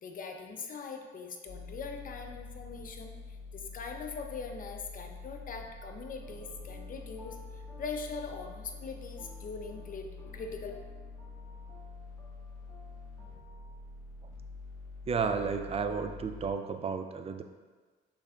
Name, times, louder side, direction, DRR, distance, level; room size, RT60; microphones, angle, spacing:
voice 1, 0.0-3.1 3.5-10.1 10.3-10.7, left 5 dB, 45° left, 4 dB, 0.6 m, -41 dB
sound 1, 1.5-16.5, left 3 dB, 75° left, 1.1 m, -46 dB
sound 2, 6.2-13.7, left 1 dB, 20° left, 1.4 m, -57 dB
voice 2, 15.1-17.4, right 5 dB, 30° right, 7 dB, 0.4 m, -32 dB
6.3 x 3.3 x 2.4 m, 1.4 s
cardioid pair, 90°, 20 cm